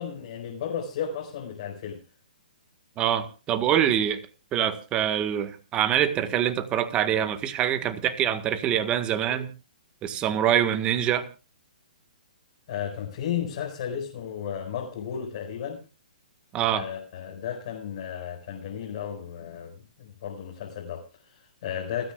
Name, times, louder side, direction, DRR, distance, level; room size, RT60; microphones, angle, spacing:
voice 1, 0.0-2.0 12.7-15.8 16.7-22.1, left 8 dB, 50° left, -1 dB, 5.1 m, -34 dB
voice 2, 3.0-4.2 4.5-9.5 10.0-11.2 16.5-16.8, right 10 dB, 20° right, 10 dB, 1.6 m, -25 dB
30.0 x 10.0 x 2.4 m, 0.32 s
hypercardioid pair, 135°, 5 cm